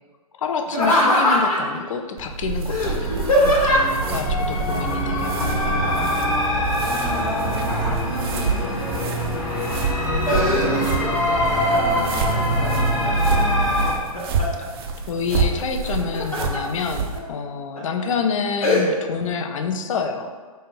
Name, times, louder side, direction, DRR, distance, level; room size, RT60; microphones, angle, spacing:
voice 1, 0.3-5.9 15.1-20.3, left 5 dB, 55° left, 6 dB, 0.5 m, -28 dB
Laughter, 0.7-1.8 2.7-4.1 5.8-6.3 6.6-8.2 8.8-9.4 9.8-11.1 11.5-12.1 12.6-13.3 13.8-14.7 15.8-16.6 17.1-17.2 17.8-18.0 18.6-18.8, left 1 dB, 75° left, 1.2 m, -22 dB
sound 1, 2.2-17.2, right 4 dB, 40° right, 0.5 m, -29 dB
sound 2, 2.5-13.9, equal, 35° left, 1.2 m, -24 dB
voice 2, 4.5-5.2 5.6-6.6 6.8-9.6 10.1-13.7, left 2 dB, 5° left, -5 dB, 0.8 m, -36 dB
4.2 x 2.7 x 3.7 m, 1.4 s
figure-of-eight pair, 120°, 19 cm